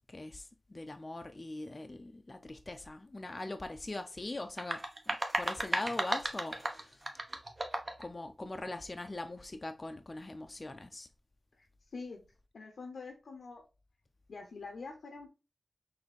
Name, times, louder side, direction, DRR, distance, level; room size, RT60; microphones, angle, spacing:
voice 1, 0.1-4.8 5.1-7.0 8.0-11.1, left 2 dB, 35° left, 0.4 m, -41 dB
sound 1, 4.4-8.1, right 2 dB, 40° right, 0.7 m, -35 dB
voice 2, 11.5-12.2 12.5-13.6 14.3-15.3, left 4 dB, 85° left, 0.5 m, -45 dB
4.1 x 2.6 x 3.1 m
cardioid pair, 55°, 0 cm